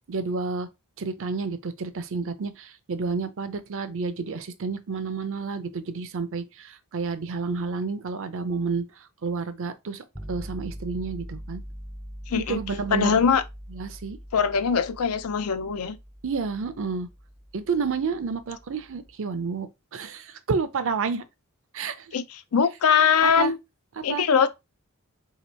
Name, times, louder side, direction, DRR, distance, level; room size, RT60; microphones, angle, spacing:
voice 1, 0.1-0.7 1.0-8.8 9.2-11.6 12.4-13.3 13.7-14.2 16.2-17.1 17.5-21.2 21.7-22.2 23.2-23.5 24.0-24.3, right 4 dB, 60° right, 0.5 m, -30 dB
sound 1, 10.1-19.1, equal, ahead, 0.5 m, -42 dB
voice 2, 12.3-12.6 12.9-13.4 14.3-16.0 22.1-23.6 24.0-24.5, left 6 dB, 75° left, 0.5 m, -22 dB
2.9 x 2.9 x 4.3 m
head